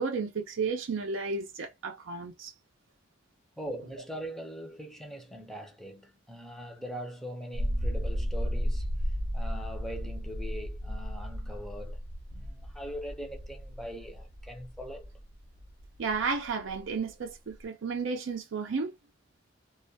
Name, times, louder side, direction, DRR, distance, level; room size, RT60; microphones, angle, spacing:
voice 1, 0.0-2.5 16.0-18.9, right 4 dB, 90° right, 0.5 m, -32 dB
voice 2, 3.6-8.9 9.3-12.0 12.3-15.1, equal, ahead, 0.5 m, -41 dB
sound 1, 7.5-17.6, equal, 55° right, 0.7 m, -34 dB
2.3 x 2.1 x 2.7 m
head